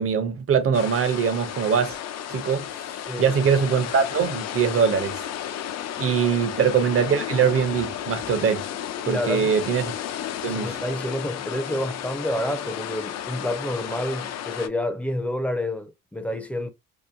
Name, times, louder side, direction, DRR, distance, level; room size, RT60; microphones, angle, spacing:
voice 1, 0.0-2.0 2.3-2.6 3.2-5.2 6.0-8.7 9.1-10.0 10.4-10.8, right 7 dB, 50° right, 0.7 m, -22 dB
sound 1, 0.7-14.7, left 10 dB, 60° left, 0.4 m, -33 dB
voice 2, 9.0-9.6 10.5-16.7, left 1 dB, 5° left, 0.5 m, -29 dB
2.8 x 2.1 x 2.5 m
cardioid pair, 90°, 30 cm